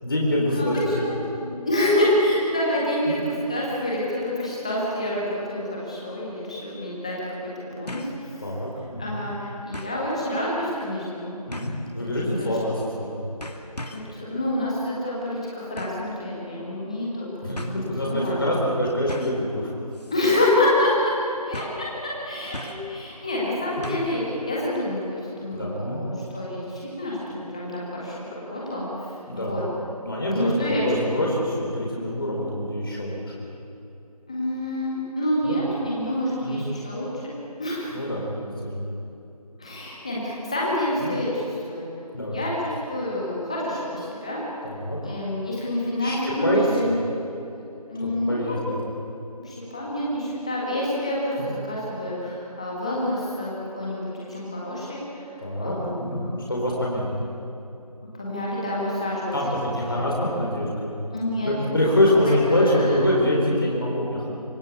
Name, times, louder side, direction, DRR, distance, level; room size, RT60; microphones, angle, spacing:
voice 1, 0.0-1.2 8.4-9.1 11.5-13.2 17.4-19.7 23.8-23.9 25.5-26.0 29.3-29.5 30.0-33.2 35.4-35.6 36.4-36.6 37.9-38.9 41.0-41.1 42.1-42.4 44.6-45.0 46.0-46.9 48.0-48.8 51.4-51.5 55.4-57.3 59.3-61.1 61.4-64.3, left 1 dB, 35° left, -3 dB, 4.1 m, -25 dB
voice 2, 1.0-7.1 7.6-8.4 9.0-11.4 12.0-12.1 12.3-12.6 13.9-18.4 20.1-21.1 21.5-28.2 28.5-29.6 30.3-30.8 31.1-31.2 34.3-37.3 37.6-38.0 39.6-41.9 42.3-44.4 45.0-47.0 47.9-48.6 49.4-56.4 58.2-59.4 59.9-60.4 61.1-61.5 62.0-62.1 62.8-62.9, left 1 dB, 10° left, -6 dB, 1.8 m, -27 dB
sound 1, 6.0-6.1 7.9-8.2 8.6-8.7 9.7-10.0 11.5-11.9 12.8-13.1 13.4-14.2 15.8-16.1 17.1-17.2 17.6-17.8 19.1-19.5 19.9-20.2 20.5-20.6 21.5-21.9 22.5-22.9 23.8-24.2 24.5-24.6, left 1 dB, 80° left, 2.7 m, -38 dB
25.0 x 16.0 x 8.4 m, 2.9 s
figure-of-eight pair, 175°, 20 cm